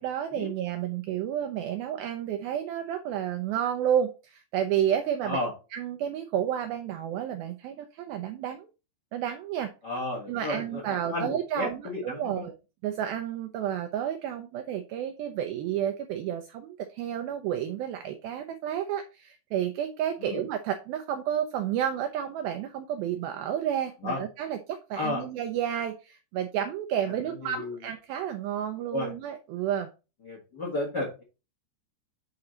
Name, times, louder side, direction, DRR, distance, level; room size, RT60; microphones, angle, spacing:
voice 1, 0.0-5.4 5.7-8.7 9.1-9.7 10.3-12.5 12.8-29.9, right 10 dB, 85° right, 7 dB, 2.1 m, -31 dB
voice 2, 9.8-12.4 20.2-20.4 24.0-24.2 24.9-25.2 27.4-27.8 28.9-29.1 30.2-31.2, left 2 dB, 65° left, 0 dB, 1.0 m, -32 dB
8.3 x 3.9 x 4.2 m, 0.30 s
omnidirectional pair, 4.9 m